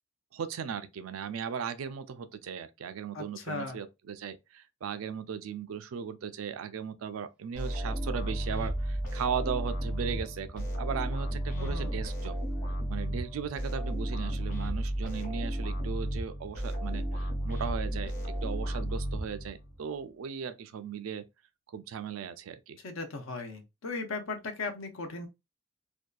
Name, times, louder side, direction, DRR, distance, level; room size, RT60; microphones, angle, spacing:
voice 1, 0.3-12.4 12.9-21.2 21.7-22.8, right 7 dB, 85° right, 0.4 m, -37 dB
voice 2, 3.1-3.8 11.5-12.0 22.8-25.3, left 3 dB, 75° left, 0.6 m, -37 dB
Wind instrument woodwind instrument, 7.4-13.9, left 3 dB, 5° right, 0.5 m, -57 dB
sound 1, 7.5-19.8, right 1 dB, 40° left, 1.1 m, -33 dB
2.6 x 2.3 x 2.2 m
head